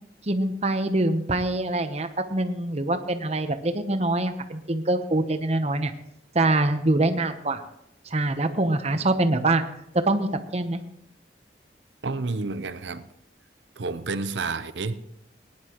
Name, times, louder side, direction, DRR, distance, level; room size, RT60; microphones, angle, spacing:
voice 1, 0.3-5.9 6.3-7.6 8.1-9.6 10.1-10.8, right 2 dB, 40° right, 0.9 m, -24 dB
voice 2, 12.0-13.0 13.8-15.0, right 3 dB, 90° right, 0.7 m, -30 dB
18.5 x 10.5 x 3.1 m
head